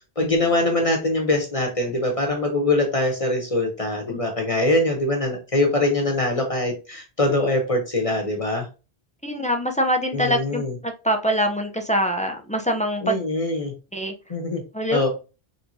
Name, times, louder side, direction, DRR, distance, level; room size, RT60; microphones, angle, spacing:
voice 1, 0.2-8.7 10.1-10.7 13.0-13.7 14.3-14.6 14.9-15.1, left 2 dB, 35° left, 0.9 m, -23 dB
voice 2, 9.2-13.2 13.9-14.1 14.7-15.0, equal, 10° left, 0.4 m, -24 dB
4.4 x 3.4 x 2.7 m
omnidirectional pair, 1.1 m